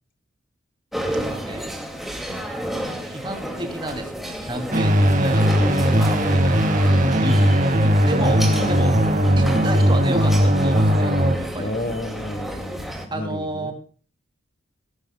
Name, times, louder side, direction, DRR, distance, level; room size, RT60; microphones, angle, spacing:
sound 1, 0.9-13.1, right 1 dB, ahead, 2.4 m, -31 dB
voice 1, 1.3-1.7 2.3-11.7 13.1-13.7, right 1 dB, 20° right, 4 dB, 3.1 m, -32 dB
sound 2, 4.7-11.4, equal, 40° right, 2.2 m, -18 dB
voice 2, 8.2-8.9 11.6-13.7, left 1 dB, 45° left, 9 dB, 1.5 m, -31 dB
17.5 x 17.0 x 2.3 m, 0.39 s
head